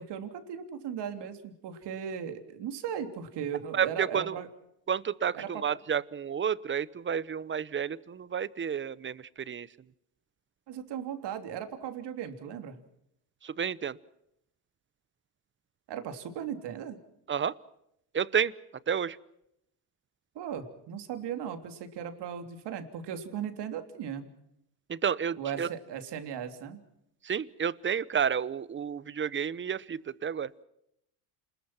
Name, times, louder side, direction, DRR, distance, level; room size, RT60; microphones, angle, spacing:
voice 1, 0.0-4.5 5.3-5.7 10.7-12.8 15.9-17.0 20.3-24.3 25.4-26.8, right 8 dB, 60° right, 7 dB, 3.3 m, -37 dB
voice 2, 3.7-4.4 4.9-9.7 13.4-14.0 17.3-17.5 18.1-18.5 18.9-19.2 24.9-25.7 27.2-30.5, right 7 dB, 25° right, 20 dB, 0.9 m, -30 dB
27.5 x 21.0 x 6.0 m, 0.79 s
supercardioid pair, 95°, 47 cm